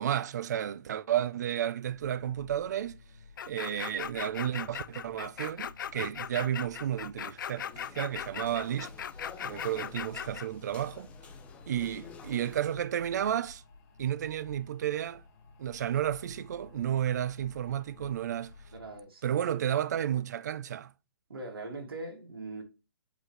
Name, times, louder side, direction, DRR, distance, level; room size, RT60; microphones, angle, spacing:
voice 1, 0.0-3.0 3.5-8.9 9.4-11.1 11.7-13.6 14.0-15.2 15.6-18.5 19.2-20.9, right 10 dB, 50° right, 0.4 m, -32 dB
sound 1, 1.8-19.0, left 3 dB, 45° left, 2.1 m, -53 dB
sound 2, 3.4-10.5, left 9 dB, 60° left, 0.4 m, -38 dB
sound 3, 7.5-12.8, left 6 dB, 10° left, 0.5 m, -51 dB
voice 2, 18.7-19.2 21.3-22.6, right 2 dB, 85° right, 2.6 m, -41 dB
8.1 x 4.1 x 3.2 m
hypercardioid pair, 160°, 12 cm